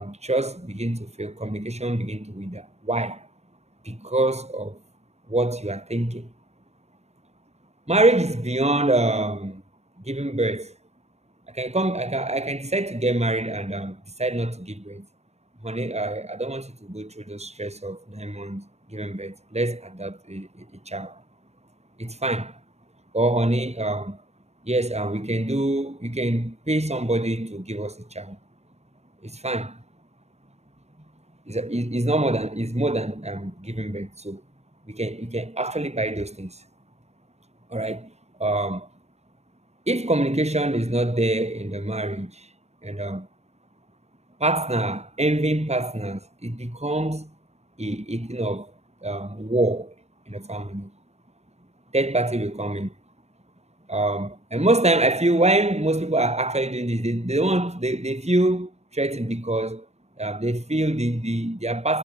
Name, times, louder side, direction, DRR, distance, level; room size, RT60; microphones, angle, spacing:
voice 1, 0.0-3.3 3.8-4.8 5.3-6.3 7.9-9.6 10.1-10.7 11.5-15.1 15.6-21.2 22.0-22.6 23.1-24.2 24.6-28.4 29.2-29.8 31.5-34.4 34.9-36.6 37.7-38.1 38.4-38.9 39.9-42.5 42.8-43.3 44.4-47.3 47.8-48.7 49.0-49.9 50.3-50.9 51.9-52.9 53.9-59.9 60.2-62.0, right 1 dB, ahead, 5.3 m, -25 dB
omnidirectional pair, 4.6 m